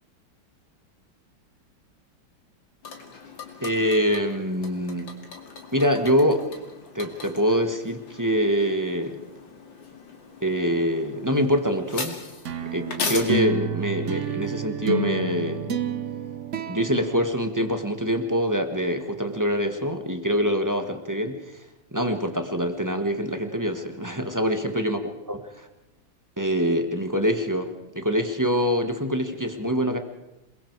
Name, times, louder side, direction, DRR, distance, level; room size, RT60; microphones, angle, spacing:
sound 1, 2.8-13.2, left 4 dB, 75° left, 3.2 m, -38 dB
voice 1, 3.6-5.1 5.7-6.4 6.9-9.2 10.4-12.1 12.7-15.8 16.7-21.4 21.9-25.0 25.3-25.7 26.4-30.0, equal, 10° right, 6 dB, 1.4 m, -25 dB
sound 2, 12.4-18.1, right 4 dB, 50° right, 1.0 m, -30 dB
27.5 x 21.5 x 4.7 m, 0.97 s
omnidirectional pair, 2.1 m